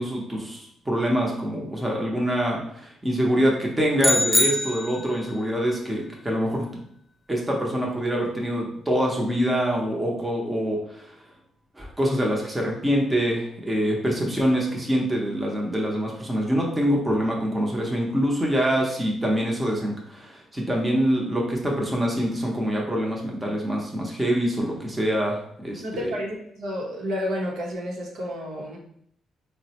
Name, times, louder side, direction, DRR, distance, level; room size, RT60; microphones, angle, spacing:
voice 1, 0.0-6.7 7.3-11.0 11.8-26.1, equal, 10° right, -2 dB, 0.7 m, -25 dB
sound 1, 4.0-5.3, left 1 dB, 10° left, 0.3 m, -23 dB
voice 2, 25.8-28.8, equal, 75° right, -2 dB, 0.8 m, -30 dB
3.8 x 2.1 x 2.8 m, 0.71 s
cardioid pair, 90°, 0 cm